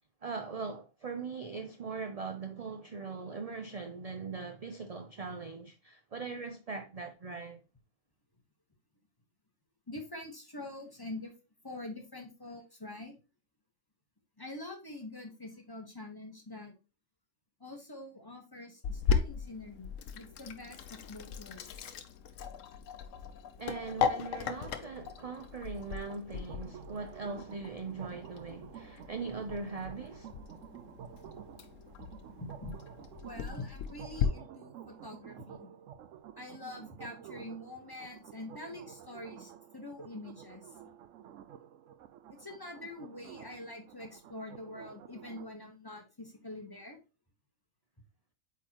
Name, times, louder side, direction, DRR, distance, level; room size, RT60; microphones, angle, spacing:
voice 1, 0.2-7.6 23.6-30.3, right 4 dB, 45° right, 0.5 m, -40 dB
voice 2, 9.9-11.3 11.6-13.1 14.4-16.7 17.6-21.6 32.4-32.7 33.2-35.7 36.4-40.6 42.3-47.0, left 2 dB, 20° left, 1.1 m, -45 dB
Sink (filling or washing), 18.8-34.2, left 7 dB, 75° left, 1.0 m, -37 dB
sound 1, 26.3-45.5, right 9 dB, 75° right, 0.9 m, -51 dB
8.3 x 4.1 x 2.9 m
omnidirectional pair, 1.3 m